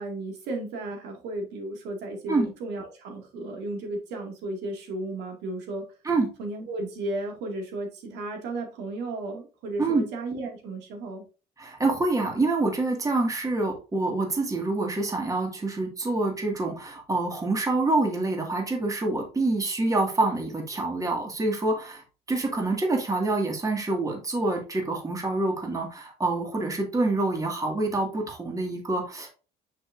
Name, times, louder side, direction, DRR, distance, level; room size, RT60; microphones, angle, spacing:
voice 1, 0.0-5.9 6.4-11.2, right 2 dB, 85° right, 3 dB, 2.2 m, -34 dB
voice 2, 11.6-22.0 22.3-29.3, right 2 dB, 20° right, 1 dB, 2.0 m, -26 dB
6.7 x 5.9 x 2.6 m, 0.33 s
cardioid pair, 110°, 17 cm